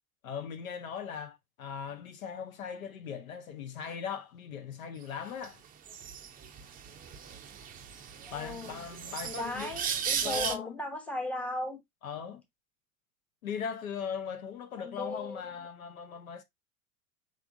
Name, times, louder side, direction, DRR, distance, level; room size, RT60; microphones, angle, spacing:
voice 1, 0.2-5.6 8.3-9.7 10.2-10.7 12.0-12.4 13.4-16.4, left 7 dB, 65° left, 0.8 m, -39 dB
sound 1, 5.4-5.5 5.8-10.5, right 8 dB, 20° right, 0.6 m, -36 dB
voice 2, 8.3-8.9 9.2-11.8 14.8-15.6, left 1 dB, 5° left, 1.0 m, -37 dB
5.0 x 3.4 x 2.6 m
figure-of-eight pair, 85°, 44 cm